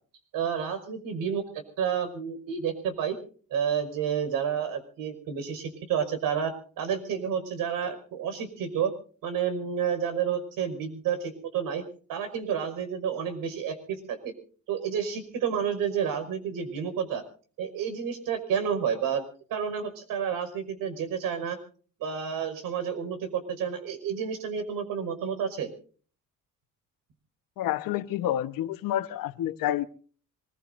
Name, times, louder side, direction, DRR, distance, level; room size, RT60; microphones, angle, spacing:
voice 1, 0.3-3.2 3.5-8.9 9.2-11.8 12.1-14.3 14.7-17.2 17.6-19.2 19.5-21.6 22.0-25.7, right 7 dB, 80° right, 5.5 m, -30 dB
voice 2, 27.6-29.9, left 12 dB, 85° left, 1.2 m, -29 dB
26.0 x 21.0 x 2.6 m
cardioid pair, 170°, 33 cm